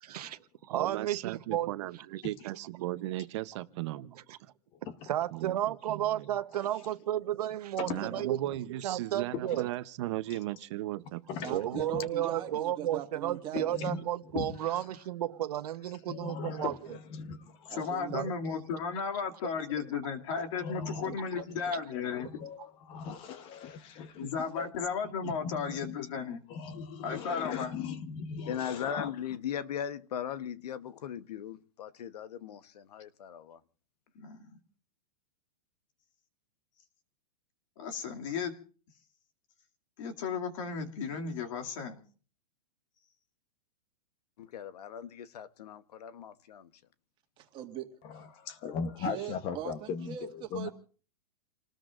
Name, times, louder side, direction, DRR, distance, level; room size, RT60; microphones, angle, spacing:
voice 1, 0.0-1.7 5.1-8.4 8.8-9.7 11.5-16.7 18.1-18.3 21.0-21.1, right 12 dB, 75° right, 1.0 m, -33 dB
voice 2, 0.7-4.5 5.3-6.3 7.8-11.5, right 15 dB, 45° right, 0.8 m, -37 dB
voice 3, 7.8-8.3 10.3-10.4 11.3-12.1 13.5-14.0 14.3-14.8 16.1-18.3 20.5-21.5 22.1-24.3 24.5-24.7 25.2-26.0 26.5-29.1 48.0-50.7, left 6 dB, 25° left, 1.0 m, -39 dB
voice 4, 11.4-13.9 17.7-18.1 47.4-47.9 49.0-50.7, right 11 dB, 25° right, 2.0 m, -41 dB
voice 5, 17.7-22.3 24.1-26.4 27.0-27.8 34.1-34.5 37.8-38.6 40.0-42.0, left 6 dB, 55° left, 2.5 m, -35 dB
voice 6, 28.5-33.6 44.4-46.7, left 9 dB, 80° left, 1.1 m, -39 dB
29.0 x 19.5 x 2.5 m
supercardioid pair, 160°, 20 cm